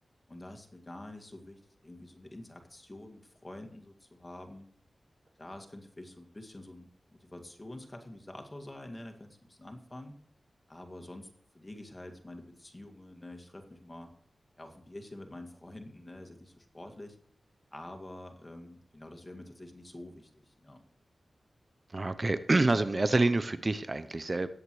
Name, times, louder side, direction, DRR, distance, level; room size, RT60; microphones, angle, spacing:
voice 1, 0.3-4.6 5.4-6.9 7.2-10.2 10.7-14.1 14.6-17.2 17.7-20.8, left 1 dB, 25° left, 4 dB, 2.1 m, -47 dB
voice 2, 21.9-24.5, right 2 dB, 40° right, 13 dB, 0.7 m, -27 dB
18.0 x 7.9 x 3.2 m, 0.64 s
cardioid pair, 50°, 0 cm